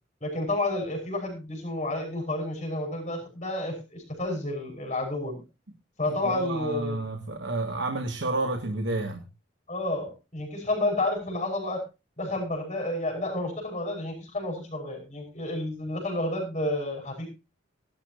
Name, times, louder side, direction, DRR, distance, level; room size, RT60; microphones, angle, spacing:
voice 1, 0.2-5.4 6.0-7.0 9.7-11.8 12.2-17.3, left 2 dB, 35° left, 1 dB, 5.9 m, -30 dB
voice 2, 6.2-9.3, right 2 dB, 75° right, 4 dB, 2.1 m, -30 dB
19.5 x 11.5 x 2.7 m, 0.28 s
head